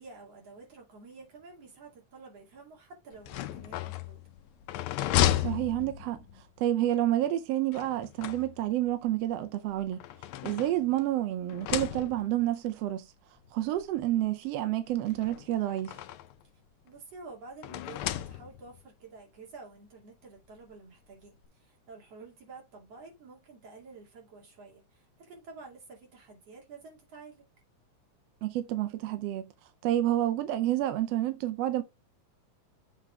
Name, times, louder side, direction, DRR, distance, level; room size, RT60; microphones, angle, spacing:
voice 1, 0.0-4.2 16.8-27.4, right 3 dB, 55° right, 3.5 m, -50 dB
sound 1, 3.1-6.4 7.7-8.9 9.7-11.1 11.5-12.4 13.4-13.5 13.8-13.9 15.1-16.4 17.6-18.8, left 12 dB, 80° left, 1.9 m, -33 dB
voice 2, 5.4-6.2 6.6-10.0 10.4-13.1 13.5-16.0 28.4-29.5 29.8-31.8, right 13 dB, 75° right, 1.5 m, -29 dB
7.5 x 3.7 x 4.5 m
omnidirectional pair, 3.5 m